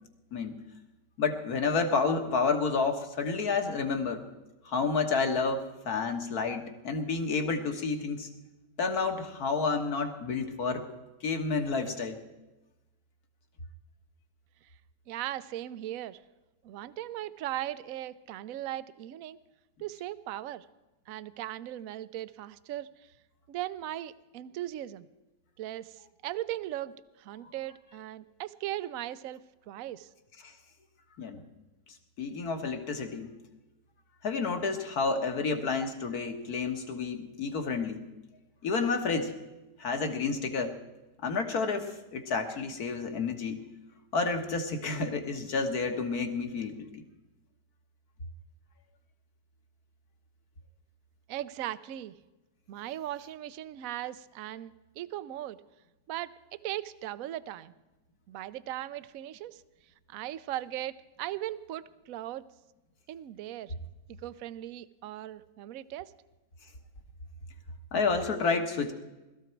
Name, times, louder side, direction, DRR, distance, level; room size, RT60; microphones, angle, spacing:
voice 1, 1.2-4.2 4.7-8.3 8.8-10.8 11.2-12.2 27.4-27.5 30.4-30.5 31.2-31.4 31.9-33.3 34.2-38.0 38.6-39.3 39.8-40.8 41.2-43.6 44.1-47.0 67.9-68.9, left 4 dB, 60° left, 6 dB, 2.0 m, -30 dB
voice 2, 15.1-16.2 16.6-19.4 19.8-20.7 21.1-23.1 23.5-25.1 25.6-29.4 29.7-30.1 51.3-52.2 52.7-55.6 56.1-57.7 58.3-59.6 60.1-62.4 63.1-63.7 64.2-66.1, right 13 dB, 65° right, 16 dB, 0.9 m, -38 dB
21.0 x 14.0 x 4.6 m, 1.1 s
omnidirectional pair, 1.8 m